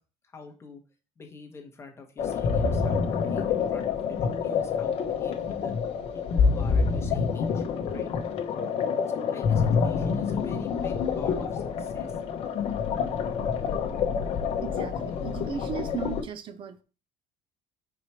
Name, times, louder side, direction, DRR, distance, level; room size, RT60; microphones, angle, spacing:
voice 1, 0.3-0.8 1.2-5.7 6.1-8.1 9.1-12.2, left 4 dB, 20° left, 1.2 m, -45 dB
sound 1, 2.2-16.2, left 6 dB, 50° left, 0.9 m, -27 dB
voice 2, 14.6-16.8, right 7 dB, 40° right, 0.6 m, -36 dB
4.9 x 4.3 x 4.7 m
cardioid pair, 150°, 13 cm